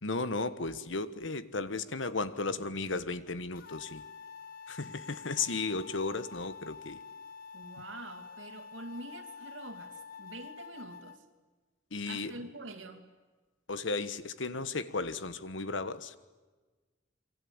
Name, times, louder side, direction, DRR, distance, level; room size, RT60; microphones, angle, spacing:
voice 1, 0.0-4.0 4.7-7.0 11.9-12.4 13.7-16.1, left 3 dB, 80° left, 1.4 m, -35 dB
sound 1, 3.6-11.2, left 6 dB, 50° left, 1.1 m, -48 dB
voice 2, 7.5-11.2 12.1-13.0, right 2 dB, 85° right, 2.9 m, -45 dB
28.0 x 23.5 x 8.8 m
head